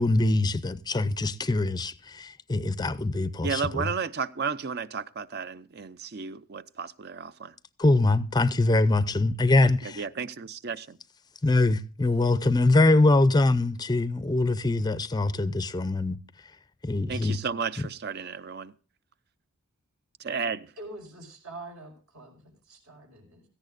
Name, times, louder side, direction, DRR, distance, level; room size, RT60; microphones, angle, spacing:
voice 1, 0.0-3.9 7.8-10.0 11.4-16.2 16.8-17.4, left 2 dB, 20° left, 0.5 m, -23 dB
voice 2, 3.4-7.5 9.6-11.0 17.1-18.7 20.2-20.7, right 5 dB, 45° right, 0.5 m, -33 dB
voice 3, 20.8-23.5, right 2 dB, 75° right, 5.2 m, -45 dB
17.0 x 14.5 x 2.5 m
head